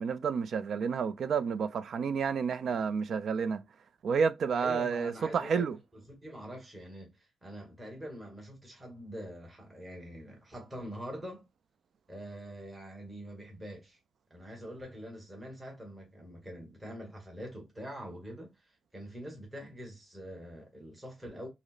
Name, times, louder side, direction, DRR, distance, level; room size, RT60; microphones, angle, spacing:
voice 1, 0.0-3.7 4.0-5.8, right 6 dB, 60° right, 0.4 m, -30 dB
voice 2, 4.5-5.8 6.1-11.4 12.1-14.0 14.3-21.5, equal, 15° right, 1.2 m, -44 dB
4.9 x 2.0 x 2.4 m
wide cardioid pair, 155°, 0 cm